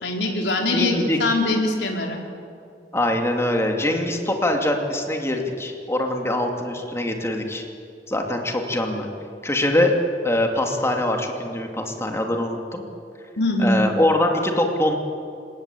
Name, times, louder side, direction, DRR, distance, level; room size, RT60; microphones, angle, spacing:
voice 1, 0.0-2.2 13.4-13.8, left 2 dB, 85° left, 1 dB, 4.2 m, -22 dB
voice 2, 0.7-1.4 2.9-7.7 8.1-9.1 9.4-9.9 10.2-12.8 13.6-15.0, left 1 dB, 15° left, 3 dB, 2.5 m, -23 dB
28.5 x 18.0 x 8.5 m, 2.5 s
head